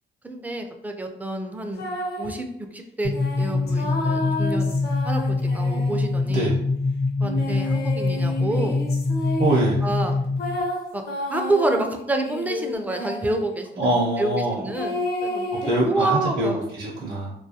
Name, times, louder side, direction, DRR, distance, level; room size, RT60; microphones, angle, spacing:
voice 1, 0.2-1.8 2.2-2.5 2.7-6.5 7.2-8.8 9.8-10.2 10.9-11.0 11.3-13.9 14.2-16.6, right 2 dB, 10° right, 4 dB, 0.3 m, -28 dB
sound 1, 1.7-2.4 3.1-6.4 7.2-9.8 10.4-13.5 14.7-15.8, left 1 dB, 55° left, 0.6 m, -31 dB
sound 2, 3.0-10.6, left 3 dB, 70° left, 1.0 m, -24 dB
voice 2, 6.3-6.6 9.4-9.8 13.8-14.7 15.6-17.3, right 2 dB, 50° right, -5 dB, 0.6 m, -23 dB
2.3 x 2.2 x 2.7 m, 0.76 s
cardioid pair, 90°, 20 cm